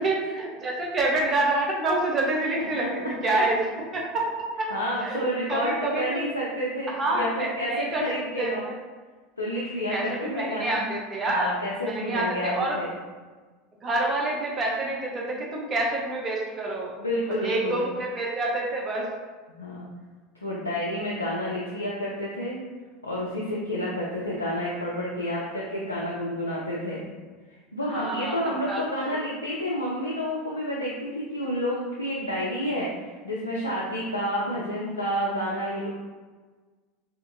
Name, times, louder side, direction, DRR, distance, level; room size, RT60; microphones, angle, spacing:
voice 1, 0.0-3.6 3.9-4.7 5.0-6.2 7.0-8.1 8.4-8.7 9.9-11.5 11.8-12.8 13.8-16.9 17.4-19.1 27.9-28.8, right 2 dB, 30° right, -2 dB, 0.7 m, -27 dB
voice 2, 4.7-8.7 9.4-10.9 11.3-12.9 17.0-17.9 19.6-19.9 20.4-22.6 23.0-27.0 27.7-35.9, equal, 90° left, -5 dB, 0.3 m, -30 dB
2.8 x 2.5 x 2.5 m, 1.4 s
figure-of-eight pair, 75°, 0 cm